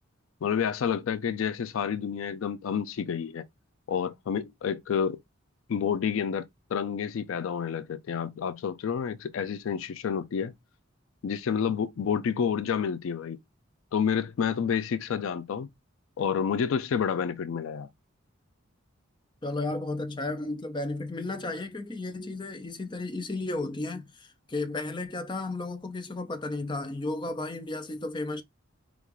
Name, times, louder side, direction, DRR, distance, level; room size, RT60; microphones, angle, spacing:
voice 1, 0.4-3.5 3.9-5.2 5.7-10.5 11.2-13.4 13.9-15.7 16.2-17.9, left 7 dB, 75° left, 0.4 m, -29 dB
voice 2, 19.4-28.4, left 2 dB, 20° left, 0.5 m, -33 dB
5.0 x 2.4 x 3.0 m
head